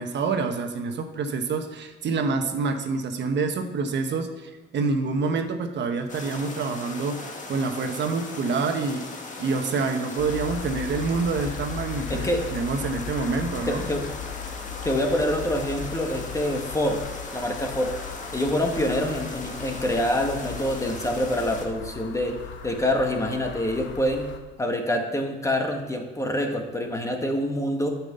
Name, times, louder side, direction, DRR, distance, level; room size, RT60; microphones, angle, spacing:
voice 1, 0.0-9.1 9.4-13.8, right 4 dB, 65° right, 6 dB, 1.1 m, -27 dB
sound 1, 6.1-21.6, left 3 dB, 40° left, 1.6 m, -38 dB
sound 2, 10.2-24.4, left 8 dB, 75° left, 1.1 m, -38 dB
voice 2, 12.1-12.4 13.7-14.0 14.8-17.0 17.3-17.9 18.3-22.4 22.6-24.3 24.6-28.0, left 1 dB, 15° left, 3 dB, 1.6 m, -26 dB
9.0 x 6.0 x 6.7 m, 1.2 s
cardioid pair, 90°, 20 cm